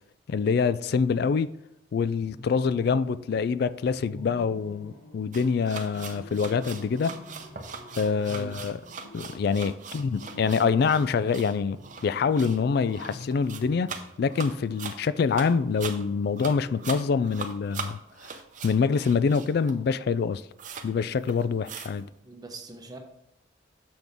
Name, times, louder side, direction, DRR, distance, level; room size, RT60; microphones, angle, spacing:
voice 1, 0.3-1.5 1.9-7.1 8.0-8.8 9.1-11.8 12.0-18.0 18.6-20.4 20.8-22.1, left 5 dB, 55° left, 0.3 m, -25 dB
sound 1, 2.1-3.5 3.9-17.8, left 1 dB, 70° left, 1.6 m, -48 dB
sound 2, 5.3-19.9 20.2-20.3 20.6-20.9 21.2-22.0, right 5 dB, 45° right, 0.7 m, -41 dB
voice 2, 22.2-23.0, right 2 dB, 20° right, 0.9 m, -41 dB
6.9 x 6.0 x 3.5 m
head